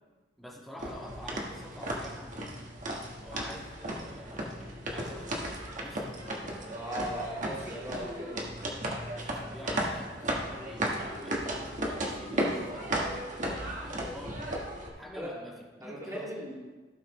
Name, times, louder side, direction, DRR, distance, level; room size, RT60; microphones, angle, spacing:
voice 1, 0.4-2.3 3.2-6.8 9.1-10.1 10.5-14.4 15.0-15.5 15.8-16.3, equal, ahead, -4 dB, 1.7 m, -47 dB
sound 1, 0.8-14.9, right 1 dB, 45° right, 1.4 m, -35 dB
voice 2, 6.7-8.4 15.1-15.3 15.8-16.6, right 1 dB, 15° right, -6 dB, 2.4 m, -38 dB
16.0 x 5.7 x 3.2 m, 1.3 s
head